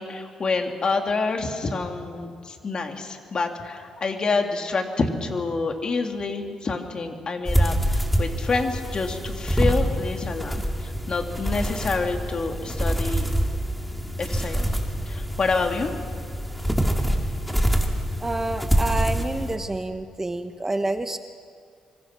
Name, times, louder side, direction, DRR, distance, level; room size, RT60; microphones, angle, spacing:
voice 1, 0.0-13.3 14.2-14.8 15.0-15.9, left 4 dB, 45° left, 3 dB, 3.1 m, -27 dB
sound 1, 7.5-19.6, equal, ahead, 2.9 m, -25 dB
voice 2, 18.2-21.2, right 2 dB, 20° right, 8 dB, 1.2 m, -28 dB
25.5 x 25.0 x 6.2 m, 2.2 s
cardioid pair, 80°, 2 cm